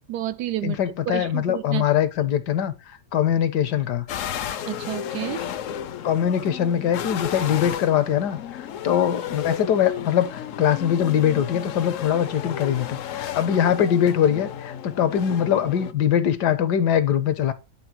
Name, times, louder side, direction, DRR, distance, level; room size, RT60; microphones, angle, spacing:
voice 1, 0.1-0.8 1.1-1.9 4.7-5.4, right 13 dB, 80° right, 1.2 m, -30 dB
voice 2, 0.6-2.7 3.1-4.0 6.0-8.4 8.8-17.5, left 9 dB, 80° left, 1.6 m, -22 dB
sound 1, 4.1-15.9, left 9 dB, 60° left, 0.9 m, -33 dB
11.0 x 3.6 x 6.1 m
omnidirectional pair, 1.8 m